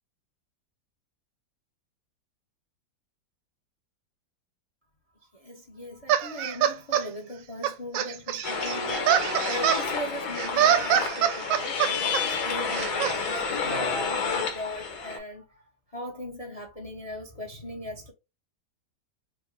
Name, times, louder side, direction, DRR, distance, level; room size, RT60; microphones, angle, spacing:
voice 1, 5.3-18.1, left 1 dB, 30° left, 0.6 m, -39 dB
sound 1, 6.1-7.0 7.6-9.8 10.4-12.2 12.7-13.2, right 9 dB, 85° right, 1.3 m, -24 dB
sound 2, 8.4-15.2, left 5 dB, 65° left, 1.5 m, -30 dB
5.8 x 2.1 x 3.2 m
omnidirectional pair, 1.9 m